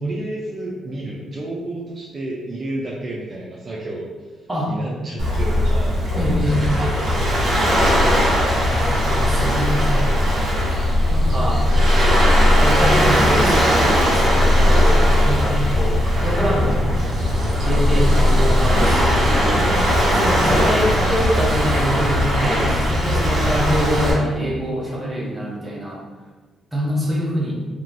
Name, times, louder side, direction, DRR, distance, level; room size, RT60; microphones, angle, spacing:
voice 1, 0.0-6.0 6.4-8.2 19.5-19.9 20.3-21.5 23.4-23.6, right 1 dB, 40° right, -5 dB, 0.5 m, -32 dB
Waves surf, 5.2-24.1, left 1 dB, 60° right, 1.4 m, -18 dB
voice 2, 6.1-6.6 8.6-10.1 11.1-11.7 12.6-16.9 17.6-19.7 20.1-26.0 26.7-27.5, equal, 15° right, -4 dB, 0.9 m, -24 dB
3.0 x 2.9 x 2.6 m, 1.3 s
cardioid pair, 90°, 0 cm